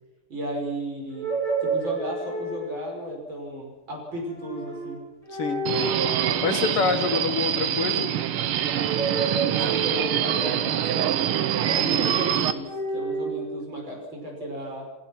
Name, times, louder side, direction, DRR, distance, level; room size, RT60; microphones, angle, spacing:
voice 1, 0.3-1.3 1.6-5.0 9.4-11.0 11.7-14.8, right 1 dB, 60° right, 0 dB, 6.6 m, -34 dB
sound 1, 1.1-2.9 4.2-5.0 5.2-6.2 6.6-7.8 8.7-10.6 11.6-13.3, right 3 dB, 15° left, 7.1 m, -31 dB
voice 2, 5.3-5.6 6.4-8.2, left 5 dB, 90° left, 7 dB, 2.5 m, -26 dB
Subway metro underground, 5.7-12.5, right 10 dB, 75° right, 1.8 m, -25 dB
29.5 x 15.5 x 5.9 m, 1.1 s
omnidirectional pair, 2.4 m